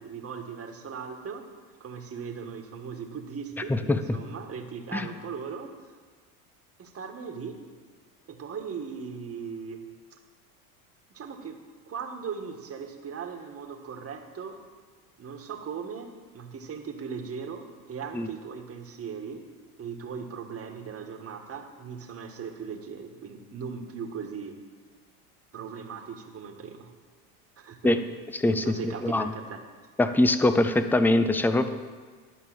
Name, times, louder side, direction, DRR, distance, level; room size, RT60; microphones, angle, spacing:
voice 1, 0.0-1.4 1.8-5.7 6.8-7.6 8.3-9.8 11.1-11.6 11.9-14.6 15.2-19.4 19.8-24.6 25.5-26.9 27.6-27.9 28.5-29.6, right 6 dB, 30° right, 4 dB, 1.6 m, -38 dB
voice 2, 3.7-4.2 4.9-5.1 18.1-18.3 27.8-28.0 28.3-29.3 30.0-31.7, left 2 dB, 5° left, 10 dB, 0.5 m, -23 dB
11.5 x 5.4 x 8.8 m, 1.5 s
supercardioid pair, 100°, 45 cm